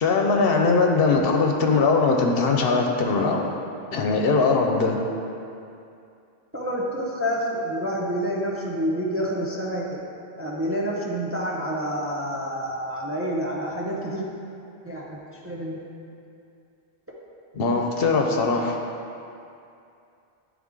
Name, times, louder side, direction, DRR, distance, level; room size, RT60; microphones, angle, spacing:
voice 1, 0.0-3.4 3.9-5.0 17.5-18.8, left 4 dB, 70° left, 1 dB, 0.8 m, -21 dB
voice 2, 6.5-10.0 10.4-14.3 14.8-15.8, equal, 15° right, -4 dB, 0.5 m, -28 dB
10.0 x 3.6 x 3.6 m, 2.6 s
omnidirectional pair, 1.1 m